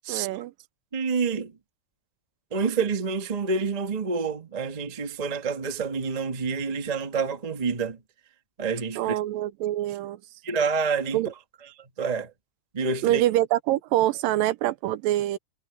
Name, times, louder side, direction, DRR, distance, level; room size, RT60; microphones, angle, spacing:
voice 1, 0.1-0.5 9.0-10.2 11.1-11.3 13.0-15.4, right 14 dB, 85° right, 2.4 m, -25 dB
voice 2, 0.9-1.5 2.5-8.0 8.6-9.2 10.4-11.2 12.0-12.3 12.7-13.2, right 5 dB, 50° right, 0.4 m, -28 dB
omnidirectional pair, 4.0 m